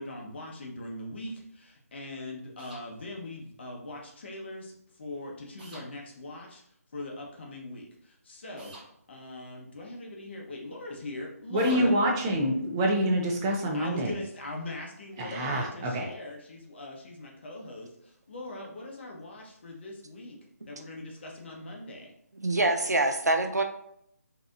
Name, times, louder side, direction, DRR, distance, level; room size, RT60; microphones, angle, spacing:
voice 1, 0.0-6.6 6.9-8.7 9.1-11.9 13.7-20.4 20.7-22.1, left 2 dB, 45° left, 0 dB, 0.9 m, -41 dB
sound 1, 2.6-2.8 5.6-5.9 8.6-8.9 11.6-11.8, right 2 dB, 35° right, 1.0 m, -48 dB
voice 2, 11.5-14.1 15.2-16.1, right 1 dB, 15° right, -1 dB, 0.4 m, -26 dB
voice 3, 22.4-23.6, right 2 dB, 90° right, 5 dB, 0.6 m, -25 dB
3.9 x 2.8 x 2.4 m, 0.71 s
figure-of-eight pair, 155°, 9 cm